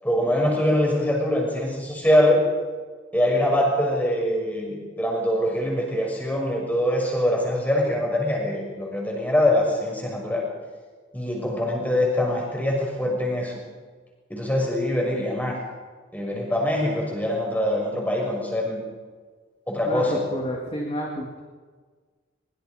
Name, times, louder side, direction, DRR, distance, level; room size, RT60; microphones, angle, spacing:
voice 1, 0.0-2.4 3.1-10.5 11.1-13.5 14.3-15.6 16.1-18.8 19.7-20.2, left 1 dB, 10° left, -1 dB, 6.4 m, -23 dB
voice 2, 19.9-21.4, equal, 25° left, -1 dB, 2.7 m, -30 dB
24.5 x 23.0 x 5.3 m, 1.5 s
head